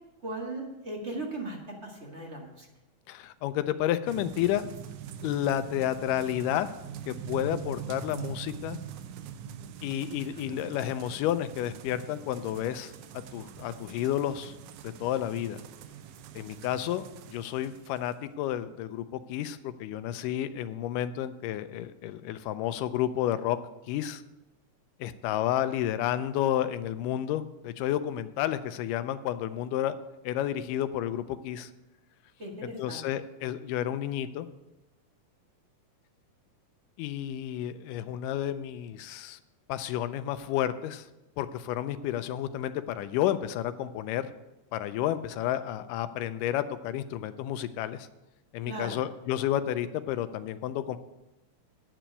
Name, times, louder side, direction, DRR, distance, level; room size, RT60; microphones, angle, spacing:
voice 1, 0.2-1.6 1.8-2.7 10.3-10.7 32.4-33.0 48.7-49.0, right 2 dB, 30° right, -1 dB, 1.3 m, -38 dB
voice 2, 3.1-4.7 5.2-6.7 7.1-8.8 9.8-14.5 14.8-15.6 16.4-23.6 23.9-24.2 25.0-30.0 30.2-31.7 32.8-34.5 37.0-39.4 39.7-41.1 41.4-44.3 44.7-48.1 48.5-51.0, left 12 dB, 90° left, 11 dB, 2.2 m, -31 dB
sound 1, 4.1-18.2, right 9 dB, 75° right, 2.0 m, -43 dB
9.7 x 6.0 x 8.3 m, 0.97 s
omnidirectional pair, 3.7 m